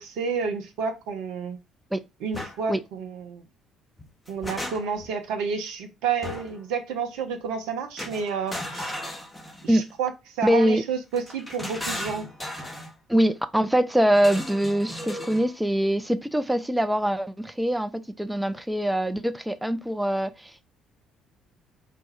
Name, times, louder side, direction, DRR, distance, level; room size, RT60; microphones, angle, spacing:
voice 1, 0.0-1.6 2.2-3.4 4.3-9.0 9.6-12.3, right 6 dB, 70° right, 0.5 m, -30 dB
sound 1, 2.3-2.6 4.0-5.1 6.2-6.6 8.0-9.8 11.1-12.9 14.1-15.5, left 1 dB, 15° left, 1.1 m, -36 dB
voice 2, 10.4-10.8 13.1-17.9 18.2-20.6, equal, 5° right, 0.5 m, -23 dB
4.1 x 2.3 x 4.6 m
figure-of-eight pair, 50°, 0 cm